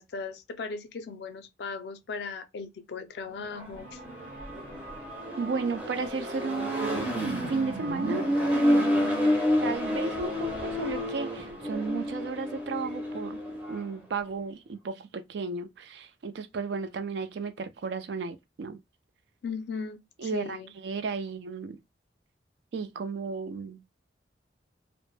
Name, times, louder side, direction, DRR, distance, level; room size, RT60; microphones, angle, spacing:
voice 1, 0.0-4.0 19.4-20.7, left 4 dB, 60° left, 0.4 m, -37 dB
Accelerating revving vroom, 3.4-13.9, equal, 10° right, 0.5 m, -29 dB
sound 1, 3.8-13.5, right 2 dB, 50° right, 0.8 m, -45 dB
voice 2, 5.4-13.4 13.7-18.8 20.2-20.6 20.8-21.8 22.7-23.8, right 4 dB, 65° right, 0.4 m, -34 dB
2.1 x 2.0 x 3.1 m
head